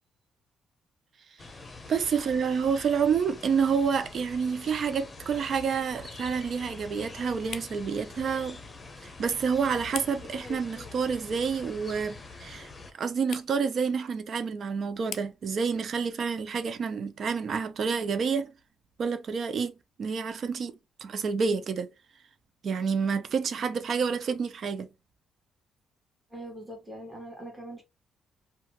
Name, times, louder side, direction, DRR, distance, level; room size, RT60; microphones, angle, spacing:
sound 1, 1.4-12.9, left 3 dB, 25° left, 0.7 m, -45 dB
voice 1, 1.9-8.6 9.0-12.7 13.0-18.5 19.0-19.7 20.0-20.7 21.0-21.9 22.6-24.9, right 6 dB, 55° right, 0.5 m, -28 dB
sound 2, 4.0-18.7, left 8 dB, 70° left, 0.4 m, -50 dB
voice 2, 26.3-27.8, right 1 dB, 10° right, 1.4 m, -42 dB
2.8 x 2.3 x 2.8 m
cardioid pair, 90°, 0 cm